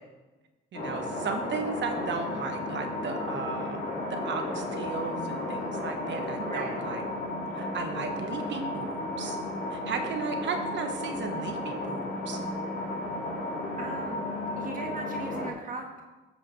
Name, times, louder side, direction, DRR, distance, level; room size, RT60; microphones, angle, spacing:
sound 1, 0.7-15.5, left 1 dB, 70° left, 2.8 m, -33 dB
voice 1, 0.7-3.8 4.2-7.0 7.5-9.4 9.7-12.4, right 5 dB, 65° right, 5 dB, 1.4 m, -35 dB
voice 2, 6.4-6.8 13.8-14.2 14.6-16.0, right 3 dB, 45° right, 1 dB, 1.7 m, -39 dB
14.0 x 7.6 x 3.3 m, 1.2 s
cardioid pair, 90°, 20 cm